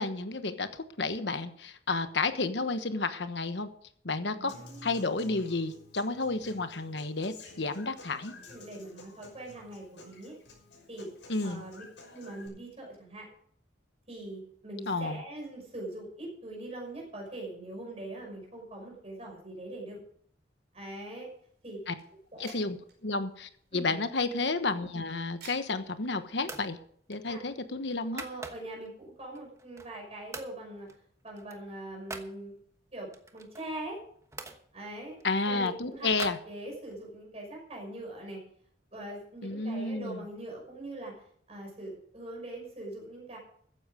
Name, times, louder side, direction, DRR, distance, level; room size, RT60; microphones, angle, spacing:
voice 1, 0.0-3.7 4.0-4.5 4.8-8.4 11.3-11.6 14.9-15.2 21.9-22.0 22.4-22.8 23.0-26.8 27.1-28.2 35.2-36.4 39.4-40.2, left 3 dB, 70° left, 10 dB, 1.2 m, -31 dB
voice 2, 4.3-5.1 8.5-10.3 10.9-11.1 11.4-11.8 12.1-13.3 14.1-20.0 20.7-21.3 21.6-21.8 22.3-22.5 23.7-23.9 27.3-27.4 28.1-30.9 31.2-32.5 32.9-34.0 34.7-35.2 35.5-36.1 36.4-38.4 38.9-41.2 41.5-43.4, right 1 dB, 35° right, 0 dB, 5.8 m, -42 dB
Human voice / Acoustic guitar, 4.5-12.5, left 2 dB, 85° left, 6.2 m, -52 dB
sound 1, 20.9-26.4, right 4 dB, 65° right, 5.2 m, -57 dB
sound 2, 25.6-26.0 26.4-26.7 27.1-28.9 29.3-30.0 30.3-30.6 30.9-32.3 33.1-34.6 35.2-37.0, right 3 dB, 15° right, 1.2 m, -45 dB
14.5 x 10.0 x 5.1 m, 0.62 s
head